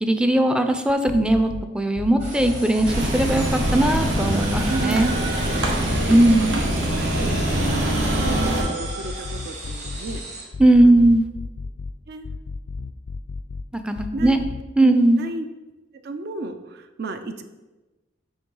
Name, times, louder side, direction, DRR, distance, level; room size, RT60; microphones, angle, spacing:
voice 1, 0.0-5.1 6.1-6.5 10.6-11.3 13.7-14.4 14.8-15.2, right 1 dB, 5° right, 7 dB, 0.4 m, -18 dB
sound 1, 0.9-1.6 1.9-3.3 3.7-5.1 5.4-6.8 7.1-8.5 8.8-10.2 10.5-11.9 12.2-13.6 13.9-14.6, left 4 dB, 75° left, 0.4 m, -33 dB
sound 2, 2.2-10.4, right 3 dB, 40° right, 1.8 m, -36 dB
sound 3, 2.9-8.6, right 1 dB, 80° right, 1.3 m, -23 dB
voice 2, 4.7-5.1 6.0-10.2 10.8-11.0 12.1-12.3 14.1-14.4 14.8-14.9 15.2-15.4 16.0-17.4, right 3 dB, 60° right, 9 dB, 0.5 m, -33 dB
7.1 x 3.1 x 5.4 m, 1.1 s
head